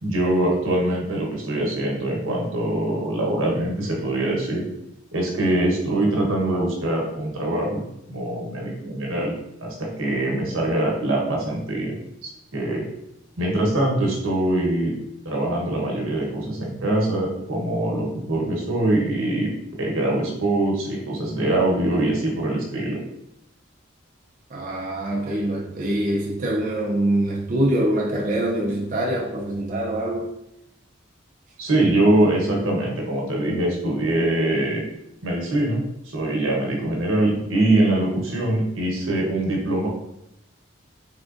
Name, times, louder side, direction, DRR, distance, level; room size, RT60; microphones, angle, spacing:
voice 1, 0.0-4.6 5.1-7.8 8.1-12.8 13.4-14.9 15.2-19.5 19.8-23.0 31.6-34.8 35.2-39.9, right 1 dB, 90° right, -2 dB, 1.0 m, -23 dB
voice 2, 24.5-30.3, right 1 dB, 40° right, -3 dB, 0.4 m, -24 dB
3.7 x 3.3 x 2.5 m, 0.82 s
head